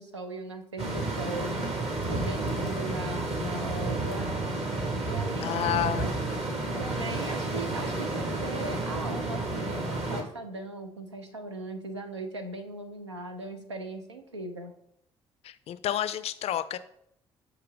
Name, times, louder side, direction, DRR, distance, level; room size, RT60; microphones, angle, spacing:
voice 1, 0.0-1.6 2.1-4.3 5.0-6.1 6.8-14.7, right 2 dB, 85° right, 6 dB, 0.5 m, -39 dB
sound 1, 0.8-10.2, right 2 dB, 45° right, 1.4 m, -31 dB
voice 2, 5.4-6.1 15.4-16.8, left 11 dB, 45° left, 14 dB, 0.4 m, -30 dB
6.8 x 2.9 x 4.9 m, 0.74 s
figure-of-eight pair, 45°, 14 cm